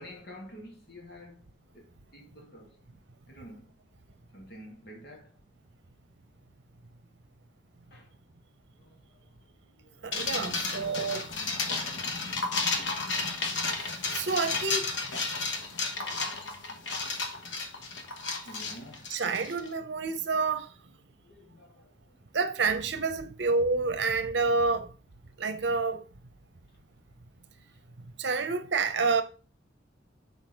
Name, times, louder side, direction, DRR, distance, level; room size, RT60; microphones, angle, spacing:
voice 1, 0.0-1.4 1.7-1.9 2.1-2.8 3.3-3.7 4.3-5.4 7.9-8.1 8.8-9.0 9.8-10.1 18.5-19.1 21.2-22.0, equal, 60° left, 2.3 m, -48 dB
voice 2, 10.0-11.3 13.8-14.9 19.1-20.7 22.3-24.9 25.4-26.0 28.2-29.2, right 4 dB, 70° right, 0.7 m, -28 dB
sound 1, 10.1-19.7, left 3 dB, 90° left, 1.2 m, -32 dB
6.3 x 5.1 x 5.3 m
head